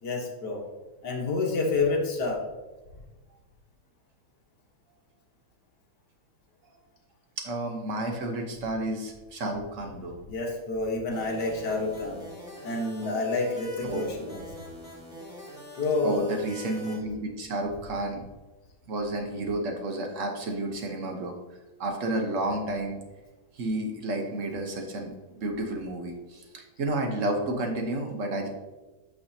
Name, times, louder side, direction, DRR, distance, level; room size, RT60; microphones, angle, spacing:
voice 1, 0.0-0.6 1.0-2.4 10.3-12.2 12.6-14.4 15.8-16.3, left 3 dB, 55° left, 0 dB, 1.8 m, -28 dB
voice 2, 7.4-10.2 13.8-14.0 16.0-18.2 18.9-21.3 21.8-23.0 23.5-28.5, right 1 dB, 50° right, 3 dB, 1.1 m, -31 dB
sound 1, 11.1-17.0, equal, ahead, 2.2 m, -43 dB
8.7 x 6.0 x 2.8 m, 1.2 s
omnidirectional pair, 2.2 m